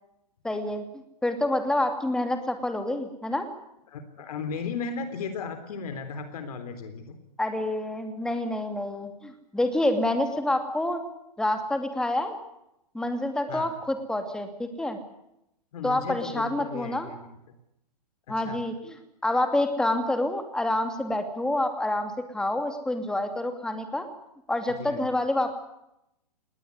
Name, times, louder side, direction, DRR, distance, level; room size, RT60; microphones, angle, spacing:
voice 1, 0.4-3.5 7.4-11.0 11.4-12.3 12.9-15.0 15.8-17.1 18.3-18.9 19.2-24.1 24.5-25.5, left 1 dB, 5° left, 6 dB, 2.6 m, -27 dB
voice 2, 3.9-7.2 13.5-13.7 15.7-17.6 18.3-18.6 24.8-25.1, left 5 dB, 60° left, 9 dB, 3.7 m, -36 dB
20.0 x 18.5 x 9.6 m, 0.82 s
hypercardioid pair, 140°, 21 cm